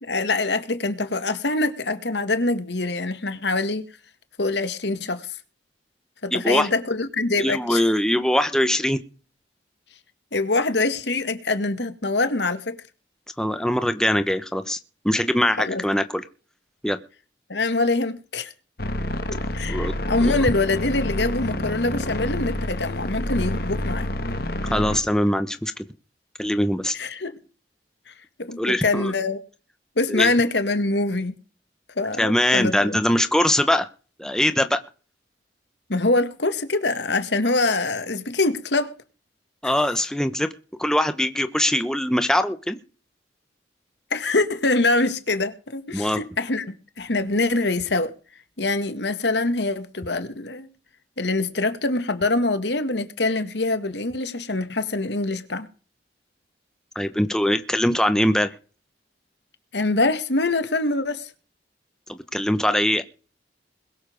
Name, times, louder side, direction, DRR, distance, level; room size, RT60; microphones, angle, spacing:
voice 1, 0.0-3.8 4.4-5.2 6.2-7.8 10.3-12.8 15.6-15.8 17.5-18.5 19.5-24.1 26.9-27.4 28.1-28.2 28.4-29.4 30.0-31.4 32.0-33.0 35.9-38.9 39.6-39.7 44.1-48.1 48.6-50.7 51.2-55.7 59.7-61.3, left 2 dB, 70° left, 1.8 m, -24 dB
voice 2, 6.3-6.7 7.4-9.0 13.4-14.8 15.0-16.2 16.8-17.0 19.7-19.9 20.2-20.4 24.7-25.7 26.4-26.9 28.6-29.1 30.1-30.5 32.2-33.9 34.2-34.8 39.6-40.5 40.8-42.8 45.9-46.2 56.9-58.5 62.1-63.0, left 1 dB, 5° left, 1.0 m, -22 dB
sound 1, 18.8-25.0, left 1 dB, 55° left, 1.7 m, -28 dB
21.5 x 7.4 x 5.1 m
head